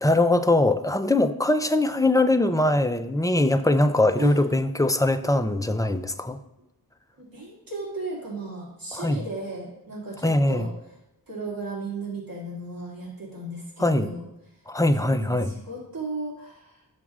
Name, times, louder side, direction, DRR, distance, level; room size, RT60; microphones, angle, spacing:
voice 1, 0.0-6.4 8.9-9.2 10.2-10.7 13.8-14.1 14.7-15.5, left 1 dB, 10° left, 8 dB, 0.4 m, -22 dB
voice 2, 7.2-10.7 11.3-14.3 15.0-16.8, right 2 dB, 60° right, -5 dB, 2.4 m, -35 dB
12.0 x 7.2 x 2.4 m, 0.90 s
wide cardioid pair, 60°, 39 cm